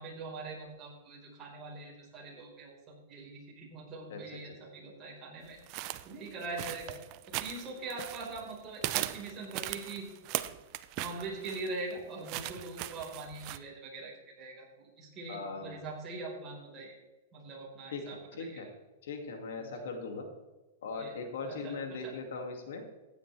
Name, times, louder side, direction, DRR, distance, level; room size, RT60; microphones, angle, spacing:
voice 1, 0.0-5.6 6.0-6.9 7.3-10.1 11.0-17.0 17.3-18.7 19.6-19.8 20.9-21.2 21.5-22.1, right 3 dB, 25° right, -3 dB, 4.8 m, -42 dB
sound 1, 5.7-8.5 8.8-13.6, right 15 dB, 40° right, 0.6 m, -38 dB
voice 2, 15.3-15.8 17.9-18.7 19.0-20.3 20.8-22.8, left 4 dB, 75° left, 3 dB, 2.5 m, -39 dB
15.5 x 9.8 x 3.5 m, 1.2 s
hypercardioid pair, 150°, 0 cm